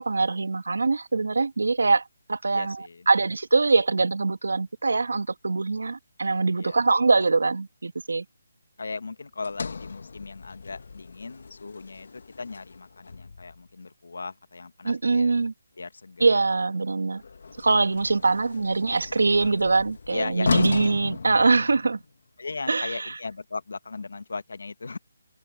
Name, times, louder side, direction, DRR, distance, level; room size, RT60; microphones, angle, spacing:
voice 1, 0.0-8.2 14.8-15.5 16.2-17.2 17.6-22.0 22.7-23.2, right 3 dB, 85° right, 1.6 m, -23 dB
voice 2, 2.5-3.1 6.6-6.8 8.8-15.3 15.8-16.3 16.8-16.9 20.1-20.9 22.4-25.0, left 4 dB, 70° left, 1.7 m, -37 dB
Sliding door, 9.4-13.7 17.2-22.1, left 4 dB, 55° left, 1.6 m, -35 dB
hypercardioid pair, 175°, 0 cm